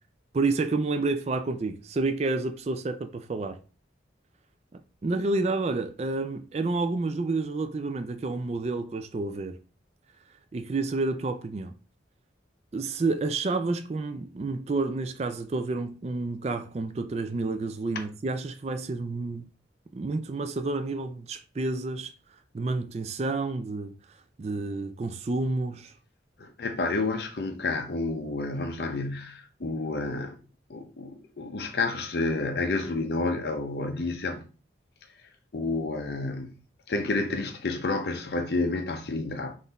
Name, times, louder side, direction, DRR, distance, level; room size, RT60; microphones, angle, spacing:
voice 1, 0.3-3.6 4.7-9.6 10.3-11.7 12.7-19.5 19.9-26.0, right 3 dB, 35° right, 0.3 m, -30 dB
voice 2, 26.4-30.4 30.7-34.4 35.5-36.6 36.9-39.6, left 3 dB, 60° left, 0.6 m, -30 dB
3.9 x 2.5 x 4.0 m
head